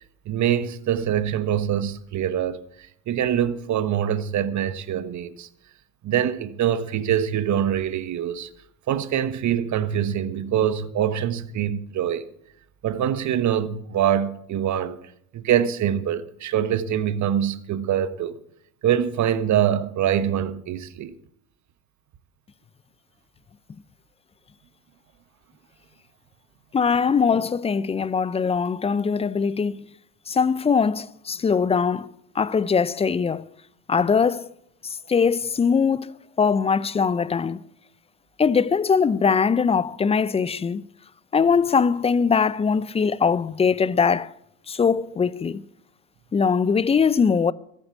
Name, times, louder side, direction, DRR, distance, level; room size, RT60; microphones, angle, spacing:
voice 1, 0.2-2.6 3.1-5.5 6.0-8.5 8.9-12.3 12.8-15.0 15.3-18.4 18.8-21.1, right 9 dB, 40° right, 1.2 m, -24 dB
voice 2, 26.7-29.8 30.3-32.1 32.4-33.4 33.9-34.5 34.8-36.1 36.4-37.6 38.4-40.9 41.3-44.3 44.7-45.6 46.3-47.5, left 6 dB, 15° left, 0.4 m, -21 dB
14.0 x 8.2 x 8.3 m
hypercardioid pair, 90°, 43 cm